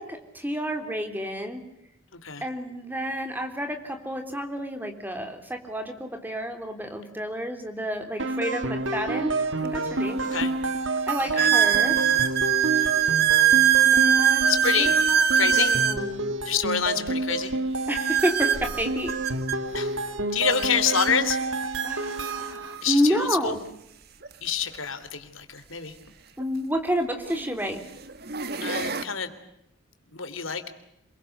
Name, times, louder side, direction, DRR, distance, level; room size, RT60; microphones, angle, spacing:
voice 1, 0.0-1.6 2.4-9.4 9.6-10.2 11.1-12.0 13.9-14.9 15.4-16.2 17.9-19.1 21.8-23.6 26.4-27.8, equal, 10° right, 6 dB, 3.5 m, -30 dB
sound 1, 8.2-22.9, right 2 dB, 65° right, 1.8 m, -29 dB
sound 2, 9.6-9.7 10.4-10.5 11.4-16.0 17.9-19.6 20.6-20.7 20.9-21.1 21.9-22.0 24.2-24.3 26.4-26.5 27.2-27.5 28.1-29.0, right 9 dB, 50° right, 1.7 m, -22 dB
voice 2, 11.8-12.2 12.7-12.8 14.5-14.9 15.3-15.8 16.4-17.6 19.7-19.9 20.3-21.4 22.8-23.5 24.4-25.9 28.6-29.3 30.1-30.6, left 7 dB, 75° left, 10 dB, 3.2 m, -27 dB
27.5 x 23.0 x 8.1 m, 0.80 s
head